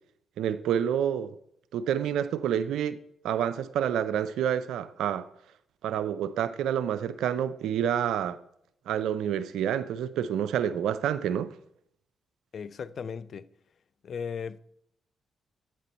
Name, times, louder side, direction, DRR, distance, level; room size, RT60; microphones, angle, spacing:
voice 1, 0.4-1.3 1.7-3.0 3.2-5.3 5.8-8.4 8.9-11.5, right 9 dB, 80° right, 0.4 m, -28 dB
voice 2, 12.5-13.5 14.0-14.6, left 6 dB, 60° left, 0.4 m, -36 dB
8.9 x 4.3 x 5.2 m
supercardioid pair, 50°, 0 cm